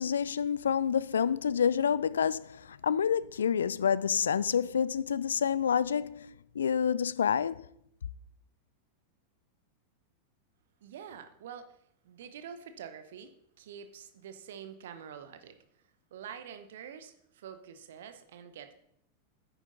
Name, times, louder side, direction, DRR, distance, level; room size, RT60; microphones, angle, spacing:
voice 1, 0.0-7.7, left 7 dB, 65° left, 0.3 m, -28 dB
voice 2, 10.8-11.7 12.0-13.3 13.6-15.6 16.1-18.7, right 8 dB, 60° right, 0.8 m, -46 dB
9.9 x 9.1 x 3.9 m
figure-of-eight pair, 90°, 0 cm